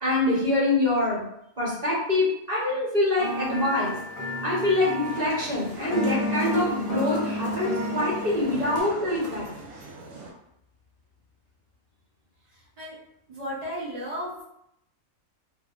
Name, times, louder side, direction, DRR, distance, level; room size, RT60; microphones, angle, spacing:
voice 1, 0.0-1.2 1.6-3.9 4.4-9.5, left 2 dB, 35° right, -6 dB, 0.9 m, -25 dB
sound 1, 3.2-8.8, left 1 dB, 75° left, 0.4 m, -31 dB
sound 2, 5.0-10.3, right 3 dB, 85° right, 1.0 m, -40 dB
voice 2, 12.5-13.0 13.3-14.4, equal, 50° right, -8 dB, 0.4 m, -35 dB
2.7 x 2.1 x 2.3 m, 0.77 s
omnidirectional pair, 1.5 m